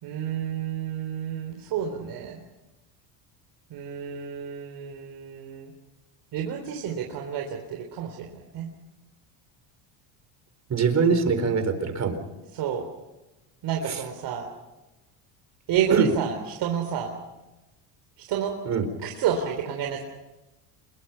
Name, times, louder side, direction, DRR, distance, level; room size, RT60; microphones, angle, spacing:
voice 1, 0.0-2.4 3.7-5.7 6.3-8.3 8.5-8.7 12.5-12.8 13.6-14.5 15.7-17.1 18.3-18.5 19.0-20.0, right 8 dB, 60° right, 2 dB, 3.7 m, -30 dB
voice 2, 10.7-12.2 13.9-14.0 15.9-16.1 18.6-18.9, right 5 dB, 35° right, 9 dB, 4.3 m, -23 dB
27.5 x 22.5 x 5.7 m, 1.0 s
cardioid pair, 115°, 47 cm